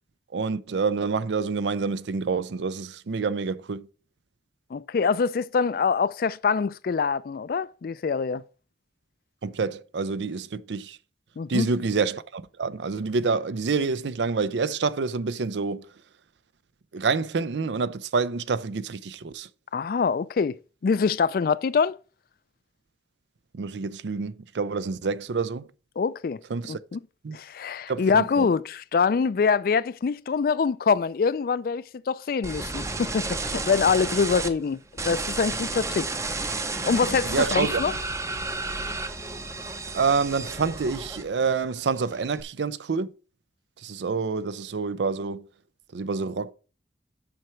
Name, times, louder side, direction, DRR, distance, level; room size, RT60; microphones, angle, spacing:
voice 1, 0.3-3.9 9.4-11.0 11.5-15.9 16.9-19.5 23.5-25.7 26.5-26.8 27.2-27.4 27.9-28.5 37.2-37.8 39.9-43.1 43.8-45.4 45.9-46.5, right 4 dB, 80° right, 0.5 m, -27 dB
voice 2, 4.7-8.4 11.4-11.7 19.7-22.0 26.0-26.4 26.7-27.0 27.3-34.8 35.0-36.1 36.8-37.9, left 5 dB, 55° left, 0.3 m, -24 dB
sound 1, 32.4-34.5 35.0-41.5 41.8-42.4, right 3 dB, 15° right, 0.6 m, -31 dB
7.9 x 5.7 x 4.5 m
head